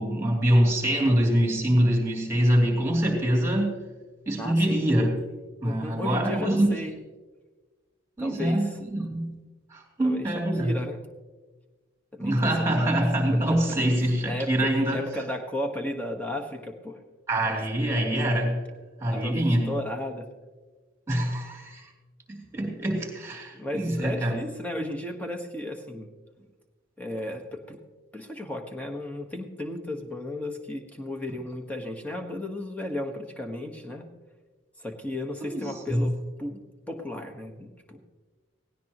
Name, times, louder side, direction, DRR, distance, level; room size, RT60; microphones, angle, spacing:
voice 1, 0.0-3.7 4.3-5.1 5.6-6.7 8.2-9.4 9.7-10.7 12.2-15.0 17.3-18.6 19.0-19.7 21.1-21.9 22.3-24.4 35.4-36.1, right 1 dB, 15° right, -1 dB, 2.9 m, -24 dB
voice 2, 4.4-4.8 5.6-7.0 8.2-8.7 10.0-10.3 10.6-11.0 12.1-13.0 13.5-13.6 14.0-17.0 17.5-17.6 19.1-19.4 19.7-20.3 23.5-26.1 27.0-27.8 28.1-34.0 34.8-36.6 36.9-38.0, left 1 dB, 5° left, 2 dB, 1.3 m, -34 dB
17.5 x 17.5 x 3.0 m, 1.3 s
head